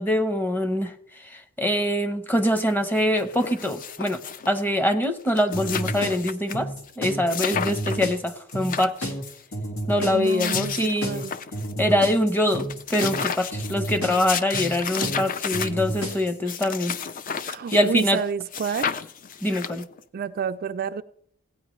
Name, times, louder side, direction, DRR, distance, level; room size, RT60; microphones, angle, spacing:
voice 1, 0.0-4.2 4.5-6.7 7.0-9.1 9.9-11.1 11.8-17.0 17.7-18.2 19.4-19.9, left 1 dB, 10° left, 9 dB, 0.7 m, -24 dB
sound 1, 2.6-2.7 2.9-4.6 5.0-5.1 5.3-6.5 6.9-7.0 7.3-8.1 8.5-9.4 10.1-11.7 12.1-12.2 12.5-18.2 18.5-20.0, left 7 dB, 40° left, 0.4 m, -32 dB
sound 2, 5.5-16.3, equal, 85° left, 2.1 m, -31 dB
voice 2, 10.1-10.7 11.0-11.3 17.5-18.9 20.1-21.0, right 6 dB, 45° right, 9 dB, 0.3 m, -29 dB
16.5 x 9.2 x 3.1 m, 0.66 s
head